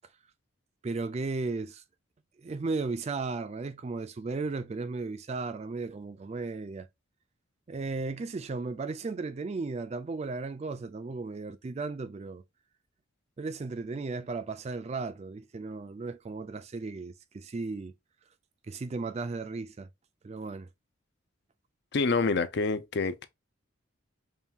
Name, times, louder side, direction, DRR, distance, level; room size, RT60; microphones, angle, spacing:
voice 1, 0.8-1.8 2.4-6.9 7.7-12.4 13.4-17.9 18.7-19.9 20.2-20.7, right 3 dB, 30° right, 0.3 m, -35 dB
voice 2, 21.9-23.3, left 4 dB, 55° left, 0.4 m, -27 dB
5.3 x 2.3 x 2.8 m
head